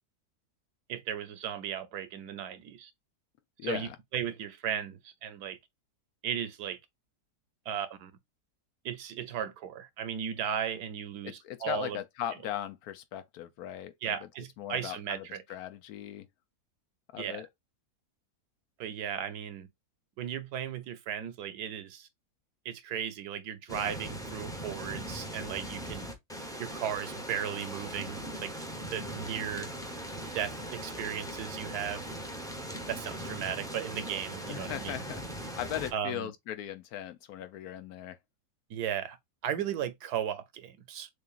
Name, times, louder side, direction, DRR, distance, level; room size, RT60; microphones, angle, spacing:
voice 1, 0.9-2.9 3.6-5.6 6.2-6.8 7.7-8.1 8.8-12.0 14.0-15.4 17.2-17.4 18.8-19.7 20.2-22.1 22.6-26.1 26.6-29.7 30.3-32.0 32.9-35.0 35.9-36.3 38.7-39.2 39.4-41.1, right 9 dB, 80° right, 1.3 m, -36 dB
voice 2, 3.6-4.0 11.2-14.2 14.6-15.2 15.5-16.3 17.1-17.5 34.4-35.2 35.6-38.2, left 11 dB, 75° left, 1.1 m, -38 dB
sound 1, 23.7-35.9, right 1 dB, 5° left, 0.5 m, -40 dB
6.6 x 2.5 x 2.4 m
omnidirectional pair, 1.7 m